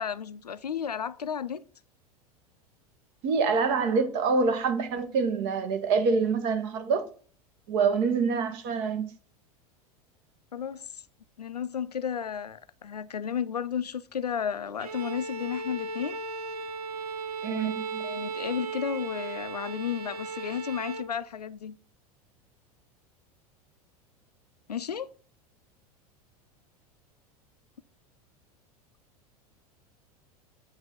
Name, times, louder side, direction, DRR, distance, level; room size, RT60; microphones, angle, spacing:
voice 1, 0.0-1.6 10.5-11.0 11.4-16.2 17.5-17.7 18.0-21.8 24.7-25.1, left 8 dB, 85° left, 0.4 m, -33 dB
voice 2, 3.2-7.1 7.7-9.1 17.4-18.0, right 5 dB, 50° right, 1.2 m, -26 dB
Bowed string instrument, 14.8-21.2, right 4 dB, 75° right, 0.6 m, -36 dB
7.9 x 2.7 x 5.1 m
figure-of-eight pair, 85°, 20 cm